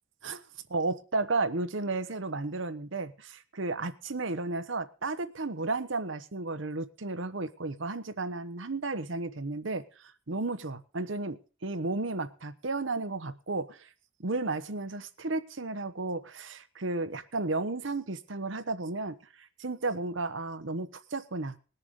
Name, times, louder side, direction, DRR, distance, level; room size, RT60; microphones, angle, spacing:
voice 1, 0.7-13.9 14.2-21.5, right 3 dB, 75° right, 1.0 m, -33 dB
20.5 x 6.9 x 5.3 m
head